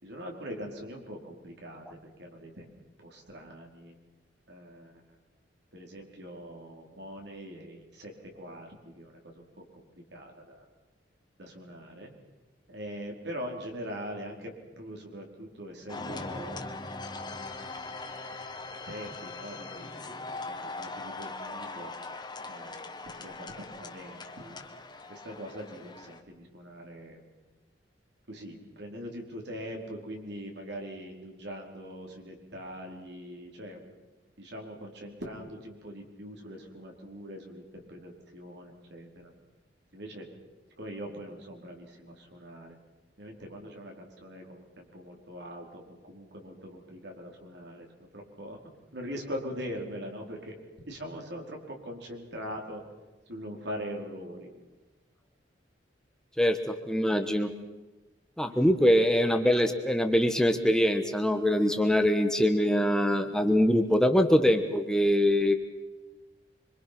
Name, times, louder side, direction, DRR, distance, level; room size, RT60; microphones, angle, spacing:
voice 1, 0.0-2.7 3.0-3.9 4.5-4.9 5.7-9.4 10.1-10.6 11.4-12.1 12.7-16.7 18.9-19.9 20.5-21.9 22.5-24.6 25.1-27.2 28.3-33.8 34.4-39.3 39.9-40.3 40.8-42.8 43.2-47.9 48.1-48.6 48.9-50.5 50.9-52.8 53.3-54.5 58.4-58.6, equal, 65° right, 1 dB, 4.7 m, -42 dB
sound 1, 15.9-26.2, left 3 dB, 25° left, 1.6 m, -40 dB
voice 2, 56.4-57.5 58.4-65.5, equal, 5° left, 6 dB, 1.3 m, -23 dB
25.5 x 25.0 x 6.1 m, 1.1 s
head